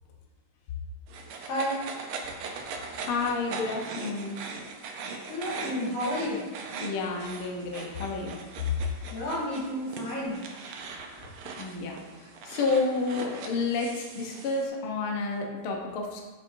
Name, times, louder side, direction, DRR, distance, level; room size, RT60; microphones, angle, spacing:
sound 1, 1.1-14.7, right 4 dB, 85° right, 1.2 m, -40 dB
voice 1, 1.4-1.8 5.3-6.4 9.1-10.5, equal, 85° left, -8 dB, 3.8 m, -31 dB
voice 2, 3.0-4.4 6.8-8.4 11.6-16.2, left 3 dB, 65° left, 0 dB, 1.5 m, -30 dB
7.4 x 6.6 x 2.6 m, 1.3 s
omnidirectional pair, 3.4 m